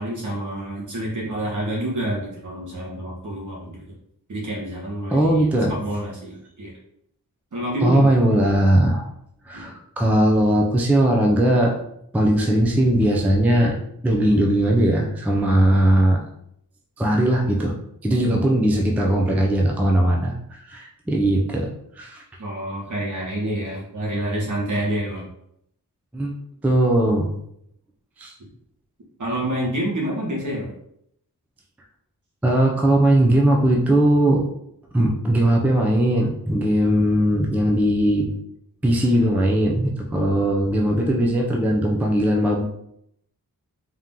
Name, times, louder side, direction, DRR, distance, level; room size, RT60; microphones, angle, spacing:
voice 1, 0.0-4.0 4.3-6.7 7.5-8.2 9.5-9.7 22.4-25.3 29.2-30.7, right 1 dB, 55° right, -4 dB, 1.6 m, -28 dB
voice 2, 5.1-5.7 7.8-9.1 9.4-11.7 12.1-13.7 14.0-16.2 17.0-17.7 18.0-21.7 22.0-22.2 26.1-26.4 26.6-27.3 28.2-28.3 32.4-34.4 34.9-38.3 38.8-42.6, right 1 dB, 5° right, -1 dB, 0.4 m, -19 dB
3.7 x 2.9 x 3.6 m, 0.74 s
wide cardioid pair, 170°, 35 cm